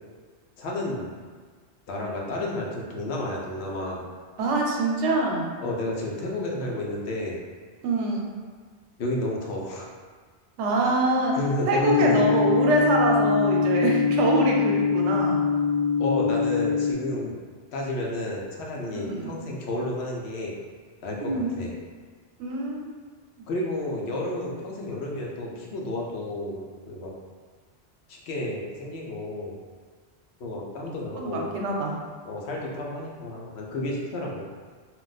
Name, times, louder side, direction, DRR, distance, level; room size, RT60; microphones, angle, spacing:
voice 1, 0.6-1.1 1.9-4.0 5.6-7.4 9.0-9.9 10.8-11.0 11.3-12.3 16.0-17.3 17.7-20.6 21.0-21.7 23.5-27.1 28.1-29.6 30.4-31.6 32.3-34.5, left 1 dB, 70° left, -2 dB, 0.8 m, -31 dB
voice 2, 4.4-5.5 7.8-8.3 10.6-11.4 11.7-15.4 18.9-19.3 21.2-21.6 22.4-22.9 31.2-32.0, right 2 dB, 90° right, -1 dB, 0.9 m, -25 dB
sound 1, 11.8-16.9, left 6 dB, 45° left, 0.9 m, -23 dB
2.4 x 2.1 x 3.9 m, 1.5 s
omnidirectional pair, 1.2 m